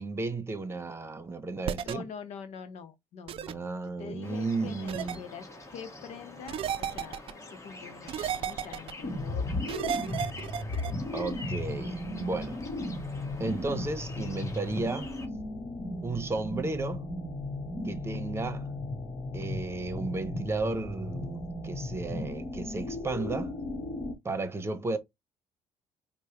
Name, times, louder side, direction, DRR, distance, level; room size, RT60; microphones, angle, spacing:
voice 1, 0.0-2.1 3.5-5.2 11.1-12.6 13.4-15.1 16.0-17.1 17.8-18.7 19.3-23.5 24.2-25.0, right 3 dB, 20° right, 0.9 m, -33 dB
sound 1, 1.6-1.9 3.3-3.5 4.9-5.2 6.5-7.3 8.1-8.9 9.7-10.9, right 9 dB, 55° right, 0.4 m, -33 dB
voice 2, 1.8-3.6 4.0-10.3, left 7 dB, 75° left, 0.8 m, -45 dB
sound 2, 4.2-15.3, left 2 dB, 25° left, 1.3 m, -47 dB
sound 3, 9.0-24.1, left 2 dB, 45° left, 1.3 m, -36 dB
4.6 x 2.2 x 2.8 m
cardioid pair, 90°, 11 cm